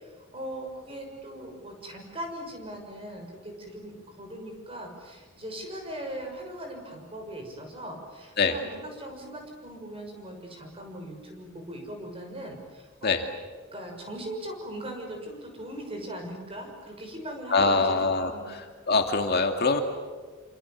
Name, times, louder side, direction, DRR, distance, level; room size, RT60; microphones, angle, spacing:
voice 1, 0.0-13.1 13.7-18.6, right 1 dB, 25° right, 3 dB, 6.3 m, -40 dB
voice 2, 17.5-18.6 18.9-19.8, left 3 dB, 50° left, 5 dB, 2.4 m, -23 dB
28.0 x 27.5 x 7.4 m, 1.5 s
head